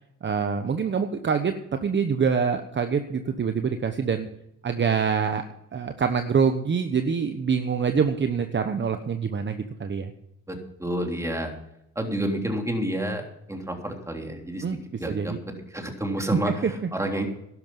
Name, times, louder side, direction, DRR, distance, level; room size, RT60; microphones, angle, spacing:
voice 1, 0.2-4.3 4.6-5.4 5.7-10.1 14.6-14.8 15.1-15.4 16.6-16.7, right 6 dB, 40° right, 7 dB, 1.1 m, -25 dB
voice 2, 10.5-11.5 11.9-14.6 15.0-17.3, right 1 dB, 10° right, 2 dB, 3.4 m, -30 dB
12.0 x 11.0 x 5.5 m, 0.80 s
cardioid pair, 90°, 30 cm